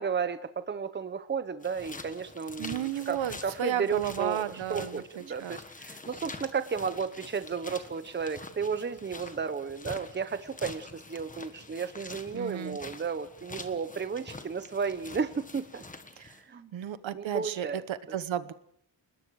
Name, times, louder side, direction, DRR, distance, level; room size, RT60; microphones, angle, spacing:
voice 1, 0.0-4.4 4.7-15.8 16.5-16.7 17.1-17.8 18.1-18.2, right 6 dB, 25° right, 12 dB, 0.9 m, -33 dB
sound 1, 1.6-16.4, left 3 dB, 15° left, 1.4 m, -46 dB
voice 2, 2.6-5.6 12.3-12.8 16.2-16.3 16.7-18.5, right 10 dB, 75° right, 14 dB, 1.1 m, -33 dB
29.0 x 20.0 x 4.8 m, 0.68 s
wide cardioid pair, 155°, 47 cm